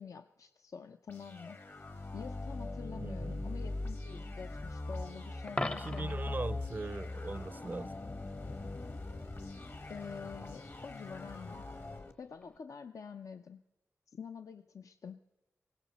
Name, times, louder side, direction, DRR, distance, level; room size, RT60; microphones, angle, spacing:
voice 1, 0.0-1.6 2.1-6.4 9.9-11.6 12.2-13.6 14.1-15.2, left 6 dB, 75° left, 0.5 m, -47 dB
sound 1, 1.1-12.1, left 2 dB, 45° left, 1.1 m, -41 dB
voice 2, 3.0-3.5 5.6-7.9, right 3 dB, 35° right, 0.4 m, -40 dB
Coin (dropping), 5.5-6.3 12.4-12.6, left 1 dB, 20° left, 0.6 m, -37 dB
18.0 x 17.5 x 4.1 m
wide cardioid pair, 70°, 6 cm